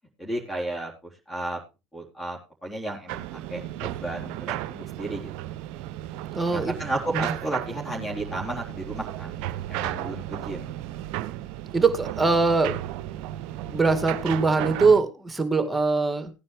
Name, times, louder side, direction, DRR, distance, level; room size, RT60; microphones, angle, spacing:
voice 1, 0.2-0.9 1.3-1.6 1.9-5.3 6.5-9.4 9.7-10.8, right 1 dB, 20° left, -1 dB, 3.8 m, -33 dB
sound 1, 3.1-15.0, right 14 dB, 60° right, 0.7 m, -34 dB
voice 2, 6.3-6.7 7.1-7.2 11.7-12.8 13.7-16.3, right 4 dB, 10° right, 9 dB, 2.1 m, -22 dB
17.0 x 9.7 x 3.2 m, 0.28 s
hypercardioid pair, 75°, 0 cm